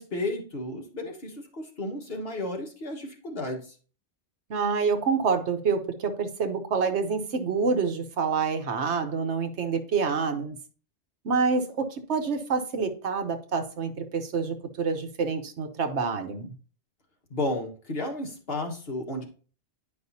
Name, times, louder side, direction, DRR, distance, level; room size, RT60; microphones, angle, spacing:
voice 1, 0.0-3.6 17.3-19.3, left 2 dB, 60° left, 1 dB, 1.7 m, -33 dB
voice 2, 4.5-10.6 11.2-16.5, right 5 dB, 75° right, 7 dB, 1.2 m, -27 dB
10.0 x 5.2 x 2.7 m, 0.39 s
omnidirectional pair, 1.2 m